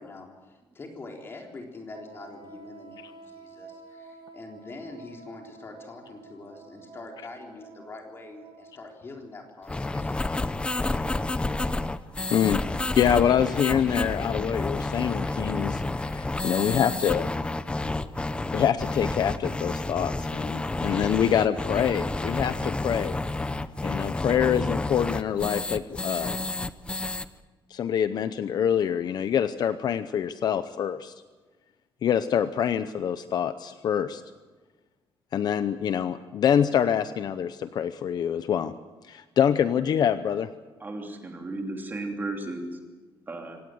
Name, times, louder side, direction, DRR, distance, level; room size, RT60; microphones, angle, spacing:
voice 1, 0.0-10.1 10.7-11.3, left 3 dB, 25° left, 1 dB, 3.7 m, -44 dB
Wind instrument woodwind instrument, 1.9-9.2, right 5 dB, 60° right, 4.9 m, -49 dB
sound 1, 9.7-27.2, left 2 dB, 10° left, 0.7 m, -30 dB
voice 2, 12.3-12.6 12.9-17.3 18.5-23.1 23.8-26.4 27.7-31.1 32.0-34.2 35.3-38.7 39.1-40.5, left 9 dB, 50° left, 12 dB, 0.7 m, -25 dB
voice 3, 40.8-42.7 43.3-43.6, right 2 dB, 20° right, 2 dB, 3.1 m, -34 dB
26.0 x 17.5 x 7.9 m, 1.3 s
cardioid pair, 170°, 9 cm